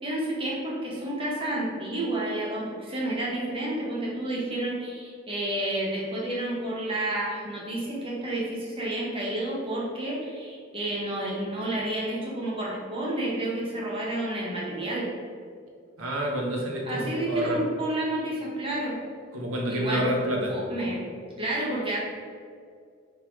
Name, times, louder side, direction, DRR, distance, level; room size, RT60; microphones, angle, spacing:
voice 1, 0.0-15.1 16.8-19.0 19.7-20.1 20.5-21.0 21.4-22.0, right 1 dB, 25° right, -4 dB, 1.4 m, -30 dB
voice 2, 16.0-17.6 19.3-20.5, equal, 90° right, -1 dB, 1.2 m, -28 dB
4.7 x 4.1 x 4.9 m, 2.1 s
head